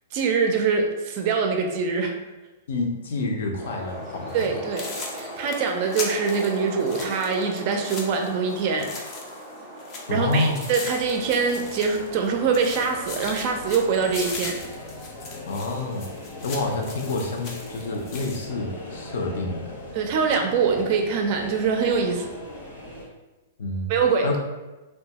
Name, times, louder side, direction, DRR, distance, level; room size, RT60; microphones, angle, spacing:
voice 1, 0.1-2.1 4.3-4.9 5.2-8.9 10.1-14.6 19.9-22.3 23.9-24.3, right 5 dB, 35° right, 3 dB, 0.4 m, -24 dB
voice 2, 2.7-4.5 10.1-10.6 15.5-19.7 23.6-23.9 24.2-24.4, left 2 dB, 70° left, 2 dB, 0.6 m, -28 dB
sound 1, 3.6-14.3, equal, 5° right, 0.7 m, -39 dB
sound 2, 4.3-4.5 4.8-9.5 9.8-12.3 12.5-18.5, left 3 dB, 25° left, 0.4 m, -38 dB
sound 3, 10.8-23.1, left 1 dB, 90° left, 0.9 m, -40 dB
2.9 x 2.2 x 2.8 m, 1.1 s
hypercardioid pair, 165°, 0 cm